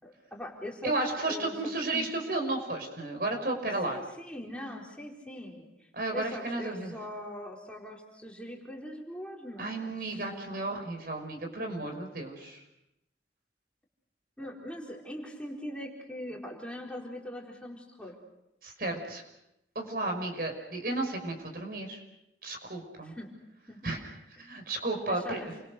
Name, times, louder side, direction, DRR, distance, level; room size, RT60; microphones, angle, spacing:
voice 1, 0.0-0.9 1.2-2.1 3.8-10.3 10.6-10.9 14.4-18.2 23.0-23.3 23.7-23.9 24.4-24.5 25.1-25.5, left 1 dB, 5° left, -2 dB, 4.3 m, -42 dB
voice 2, 0.8-4.0 5.9-6.9 9.6-12.6 18.6-19.2 19.8-22.0 22.4-23.1 23.8-24.1 24.4-25.5, right 2 dB, 55° right, 3 dB, 5.6 m, -33 dB
29.5 x 25.0 x 6.6 m, 0.88 s
head